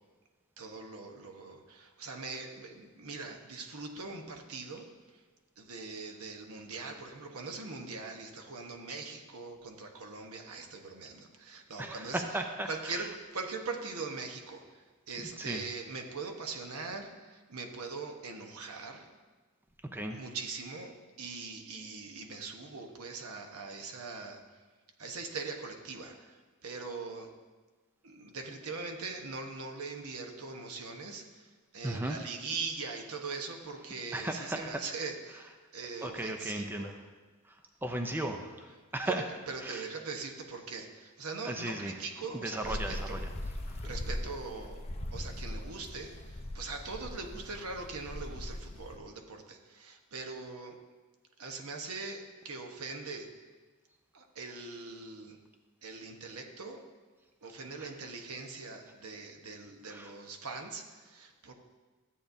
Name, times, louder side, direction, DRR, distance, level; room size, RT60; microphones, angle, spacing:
voice 1, 0.6-4.8 5.6-12.2 12.7-14.6 15.1-19.0 20.1-20.9 21.2-24.4 25.0-26.3 26.6-27.3 28.0-31.4 31.7-36.9 39.1-43.2 43.8-44.9 45.1-50.7 51.4-53.3 54.1-55.4 55.8-56.8 57.4-61.5, right 4 dB, 70° right, 3 dB, 1.0 m, -41 dB
voice 2, 11.8-13.1 15.2-15.6 19.9-20.2 31.8-32.2 34.1-34.8 36.0-37.0 37.5-39.2 39.6-39.9 41.4-42.0 42.4-43.3 43.7-43.9 57.8-57.9 59.8-60.1, right 1 dB, 10° right, 4 dB, 0.5 m, -36 dB
sound 1, 42.6-49.0, left 1 dB, 30° left, 0.7 m, -40 dB
13.5 x 8.5 x 2.7 m, 1.3 s
head